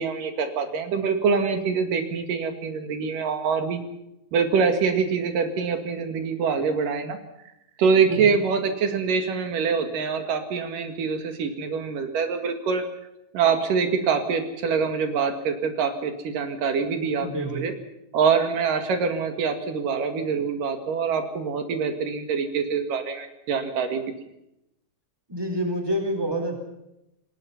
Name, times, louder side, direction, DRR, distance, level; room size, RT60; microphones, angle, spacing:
voice 1, 0.0-3.8 4.3-7.2 7.8-12.8 13.3-17.7 18.1-24.0, right 5 dB, 80° right, 6 dB, 3.6 m, -25 dB
voice 2, 17.2-17.7 25.3-26.6, right 1 dB, 5° right, 5 dB, 4.2 m, -27 dB
28.0 x 19.0 x 5.8 m, 0.85 s
omnidirectional pair, 3.7 m